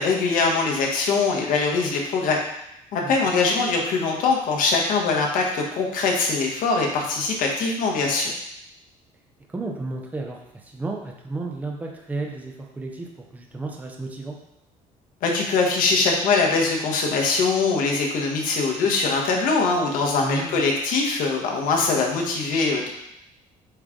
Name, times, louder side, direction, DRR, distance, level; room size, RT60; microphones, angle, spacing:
voice 1, 0.0-2.4 2.9-8.3 15.2-22.9, left 4 dB, 65° left, 0 dB, 1.3 m, -22 dB
voice 2, 9.5-14.4 20.2-20.6, right 3 dB, 10° right, 1 dB, 0.7 m, -33 dB
7.9 x 3.3 x 3.8 m, 0.81 s
cardioid pair, 170°, 15 cm